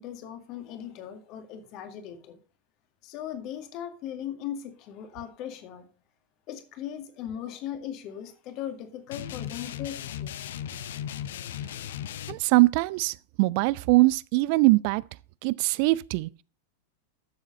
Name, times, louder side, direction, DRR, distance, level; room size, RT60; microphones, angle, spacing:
voice 1, 0.0-2.4 3.0-5.9 6.5-10.4, left 10 dB, 40° left, 2.0 m, -38 dB
sound 1, 9.1-12.3, left 10 dB, 60° left, 0.7 m, -36 dB
voice 2, 12.3-15.0 15.4-16.3, right 21 dB, 45° right, 0.4 m, -22 dB
13.5 x 7.3 x 4.0 m
figure-of-eight pair, 90°, 0 cm